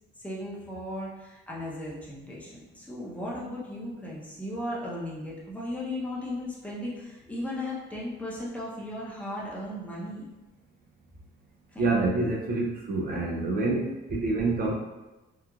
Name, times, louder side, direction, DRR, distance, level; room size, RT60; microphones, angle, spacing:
voice 1, 0.2-10.2 11.7-11.9, left 1 dB, 5° left, -7 dB, 0.6 m, -36 dB
voice 2, 11.8-14.7, right 3 dB, 50° right, -1 dB, 0.4 m, -27 dB
2.9 x 2.4 x 2.3 m, 1.1 s
cardioid pair, 125°, 20 cm